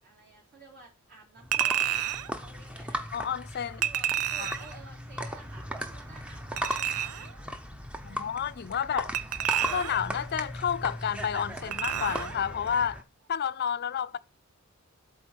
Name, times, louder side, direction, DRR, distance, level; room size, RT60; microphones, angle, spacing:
voice 1, 0.0-3.0 3.6-7.3 7.9-8.3 8.8-9.3 13.8-13.9, right 3 dB, 45° right, 3.2 m, -53 dB
sound 1, 1.4-13.0, equal, 5° right, 0.7 m, -37 dB
Chink clink, 1.5-2.3 3.8-4.7 6.6-7.3 9.1-10.1 11.7-12.3 12.7-12.8, right 10 dB, 90° right, 0.5 m, -30 dB
voice 2, 3.1-3.8 4.4-4.5 8.0-9.1 9.7-13.0 13.3-14.2, left 8 dB, 45° left, 0.4 m, -30 dB
8.0 x 4.3 x 6.5 m
head